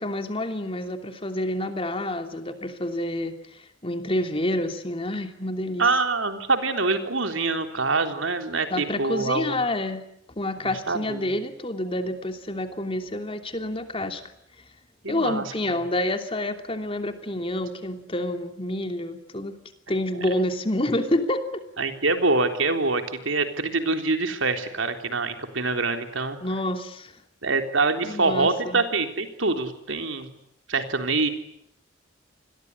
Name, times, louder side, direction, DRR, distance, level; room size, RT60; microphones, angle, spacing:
voice 1, 0.0-5.8 8.7-10.0 10.4-14.2 15.1-19.5 19.9-21.4 26.4-27.1 28.0-28.8, left 1 dB, 30° left, 6 dB, 3.0 m, -28 dB
voice 2, 5.8-9.6 10.6-11.3 15.0-15.4 21.8-26.4 27.4-30.3 30.7-31.3, right 3 dB, 85° right, 6 dB, 3.7 m, -25 dB
28.5 x 21.5 x 9.7 m, 0.74 s
head